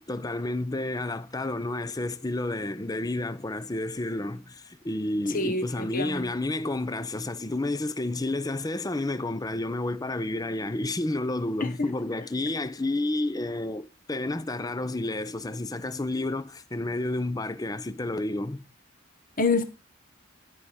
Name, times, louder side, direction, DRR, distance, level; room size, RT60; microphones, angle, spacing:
voice 1, 0.0-18.6, left 2 dB, 20° left, 0.7 m, -30 dB
voice 2, 5.3-6.3 11.6-11.9 19.4-19.6, left 3 dB, 45° left, 1.4 m, -27 dB
11.5 x 5.6 x 4.8 m
head